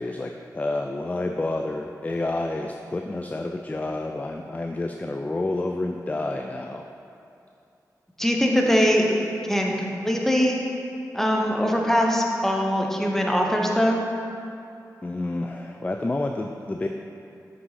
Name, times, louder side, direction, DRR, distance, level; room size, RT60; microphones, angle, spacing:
voice 1, 0.0-6.8 15.0-16.9, left 2 dB, 20° left, 4 dB, 0.3 m, -29 dB
voice 2, 8.2-9.1 9.5-9.7 10.0-10.6 11.1-14.0, equal, 5° left, 0 dB, 0.9 m, -21 dB
6.1 x 5.3 x 3.2 m, 2.6 s
cardioid pair, 45°, 7 cm